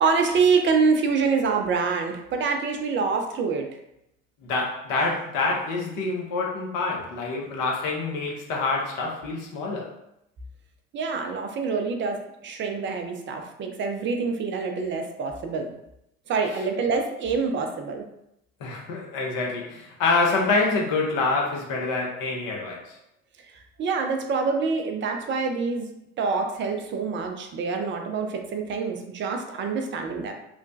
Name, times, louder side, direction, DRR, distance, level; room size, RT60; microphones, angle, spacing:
voice 1, 0.0-3.7 10.9-15.7 16.3-18.1 23.8-30.3, right 5 dB, 30° right, 4 dB, 0.4 m, -26 dB
voice 2, 4.4-9.9 18.6-23.0, left 3 dB, 55° left, -1 dB, 0.9 m, -26 dB
3.0 x 2.1 x 2.6 m, 0.82 s
hypercardioid pair, 65°, 40 cm